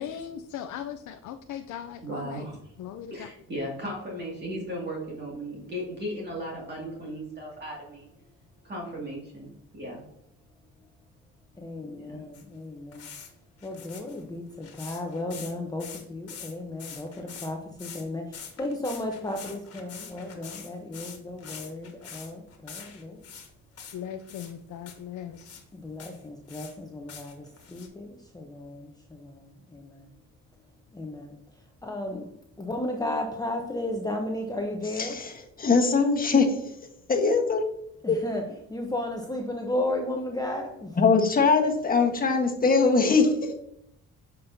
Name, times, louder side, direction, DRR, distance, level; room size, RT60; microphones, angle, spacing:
voice 1, 0.0-2.5 2.8-3.3 23.9-25.6, left 9 dB, 75° left, 6 dB, 0.5 m, -38 dB
voice 2, 2.0-2.7 3.1-8.1 8.6-10.0 11.8-12.2, equal, 35° right, -3 dB, 2.2 m, -36 dB
voice 3, 11.6-13.1 13.6-23.2 25.7-30.0 30.9-31.4 31.8-32.3 32.6-35.2 38.0-41.0, left 1 dB, 10° left, 2 dB, 0.8 m, -34 dB
sound 1, 12.3-12.4 12.9-13.3 13.6-15.5 15.8-16.5 16.8-17.5 17.8-18.0 18.3-23.5 23.8-24.5 24.9-25.0 25.4-25.6 26.0-26.7 27.1-27.9, left 6 dB, 50° left, 1.6 m, -44 dB
voice 4, 35.0-35.3 35.6-36.5 37.1-37.7 38.1-38.2 41.0-43.5, left 4 dB, 30° left, 3 dB, 1.3 m, -21 dB
7.7 x 5.4 x 2.7 m, 0.76 s
cardioid pair, 90°, 30 cm